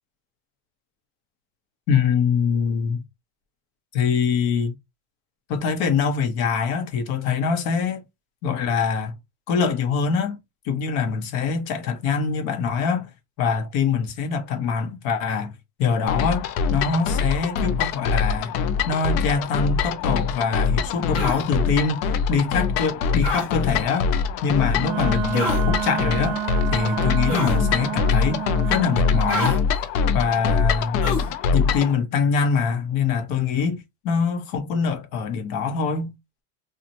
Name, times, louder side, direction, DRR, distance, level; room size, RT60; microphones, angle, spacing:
voice 1, 1.9-3.0 3.9-4.7 5.5-8.0 8.4-9.1 9.5-10.4 10.6-13.1 13.4-15.5 15.8-18.5 18.9-22.0 22.3-24.1 24.4-26.4 26.7-29.6 30.1-31.0 31.5-36.1, left 6 dB, 60° left, 1.0 m, -24 dB
sound 1, 16.1-31.9, left 6 dB, 80° left, 0.6 m, -24 dB
sound 2, 21.1-21.4 23.2-23.5 25.3-25.6 27.3-27.6 29.3-29.6 31.0-31.3, left 2 dB, 35° left, 1.2 m, -27 dB
Wind instrument woodwind instrument, 24.7-29.5, right 13 dB, 80° right, 0.5 m, -29 dB
2.9 x 2.4 x 2.6 m
supercardioid pair, 130°, 40 cm